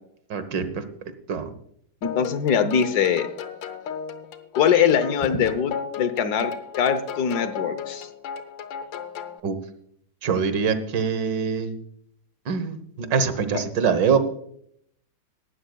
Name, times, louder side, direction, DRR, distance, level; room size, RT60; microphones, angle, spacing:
voice 1, 0.3-0.8 1.3-1.5 9.4-9.6 10.2-11.8 12.5-14.2, right 6 dB, 75° right, 11 dB, 1.9 m, -24 dB
sound 1, 2.0-9.4, left 7 dB, 90° left, 1.7 m, -35 dB
voice 2, 2.0-3.3 4.5-8.1, left 7 dB, 65° left, 11 dB, 1.4 m, -22 dB
18.0 x 12.5 x 2.3 m, 0.68 s
omnidirectional pair, 2.0 m